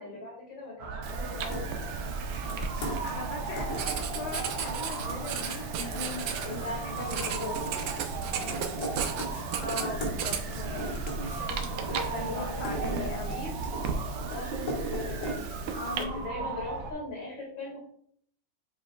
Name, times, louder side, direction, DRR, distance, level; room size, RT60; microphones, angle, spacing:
voice 1, 0.0-1.8 6.5-7.7 11.2-13.7 14.2-17.8, left 3 dB, 75° left, -2 dB, 2.8 m, -40 dB
sound 1, 0.8-16.9, right 4 dB, 55° right, 1.3 m, -37 dB
Writing, 1.0-16.0, right 7 dB, 85° right, 1.4 m, -36 dB
sound 2, 1.3-16.1, equal, 40° left, 1.9 m, -40 dB
voice 2, 3.0-7.6 9.6-11.0 12.1-13.4 15.7-16.5, left 3 dB, 60° left, -1 dB, 1.5 m, -39 dB
7.8 x 5.2 x 2.3 m, 0.64 s
omnidirectional pair, 2.1 m